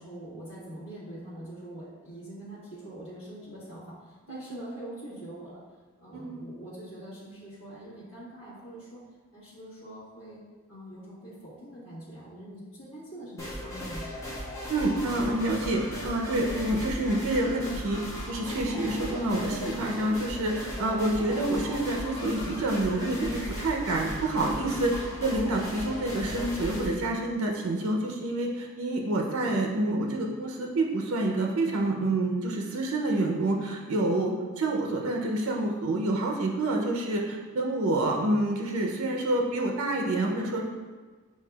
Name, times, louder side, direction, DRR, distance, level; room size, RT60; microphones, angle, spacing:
voice 1, 0.0-5.6 6.0-9.0 9.3-10.4 10.7-14.1, right 1 dB, 75° left, -11 dB, 1.4 m, -44 dB
voice 2, 4.3-4.6 6.1-6.4 14.7-18.0 18.3-40.6, right 2 dB, 70° right, 1 dB, 0.5 m, -28 dB
sound 1, 13.4-26.9, equal, 15° left, 0.7 m, -37 dB
6.6 x 2.7 x 2.3 m, 1.4 s
head